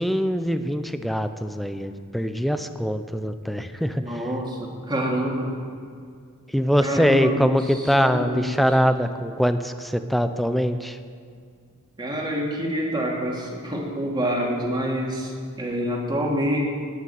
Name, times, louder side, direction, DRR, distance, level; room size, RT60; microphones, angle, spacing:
voice 1, 0.0-4.0 6.5-11.0, equal, ahead, 9 dB, 0.6 m, -23 dB
voice 2, 4.0-5.6 6.8-8.7 12.0-16.6, equal, 20° right, -2 dB, 2.6 m, -27 dB
19.0 x 6.6 x 9.2 m, 2.2 s
head